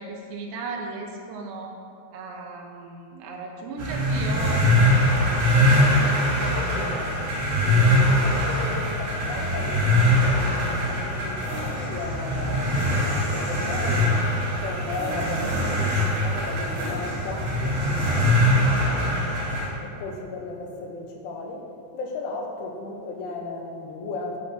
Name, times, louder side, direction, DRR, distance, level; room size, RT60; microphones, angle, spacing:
voice 1, 0.0-1.7 2.1-6.4, right 3 dB, 75° right, 1 dB, 3.1 m, -36 dB
sound 1, 3.8-19.7, left 1 dB, 55° right, 4.2 m, -22 dB
voice 2, 6.5-7.3 7.6-14.1 14.6-19.1 19.8-21.7 21.9-24.4, left 3 dB, 85° left, 1 dB, 3.5 m, -36 dB
13.0 x 5.0 x 6.3 m, 2.5 s
omnidirectional pair, 5.4 m